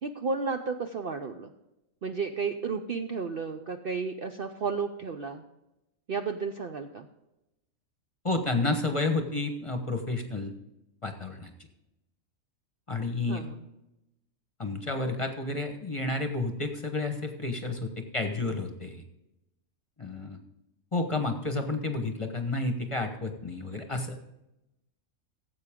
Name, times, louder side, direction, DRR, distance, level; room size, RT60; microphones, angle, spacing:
voice 1, 0.0-1.5 2.0-5.4 6.1-7.1 13.3-13.7, right 5 dB, 55° right, 5 dB, 0.7 m, -32 dB
voice 2, 8.2-10.5 11.0-11.5 12.9-13.5 14.6-19.0 20.0-20.4 20.9-24.2, left 2 dB, 25° left, 5 dB, 1.0 m, -31 dB
15.0 x 7.9 x 3.7 m, 0.90 s
omnidirectional pair, 1.4 m